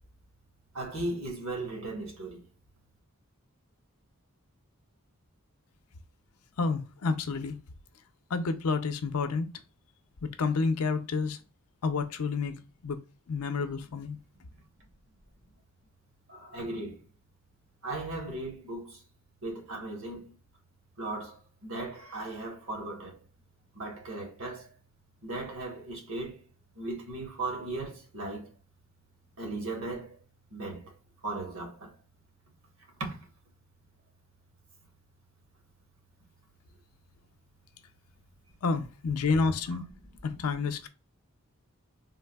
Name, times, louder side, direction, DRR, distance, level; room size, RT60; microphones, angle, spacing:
voice 1, 0.7-2.4 16.3-17.0 17.8-19.0 19.4-20.3 21.0-23.2 23.7-24.7 25.2-26.4 26.7-28.5 29.4-30.2 30.5-30.9 31.2-31.9 33.0-33.2, right 2 dB, 65° right, 1.3 m, -37 dB
voice 2, 6.6-7.6 8.3-9.5 10.2-11.4 11.8-13.0 13.3-14.2 38.6-39.8 40.2-40.9, left 4 dB, 90° left, 0.5 m, -29 dB
3.6 x 2.6 x 2.2 m
head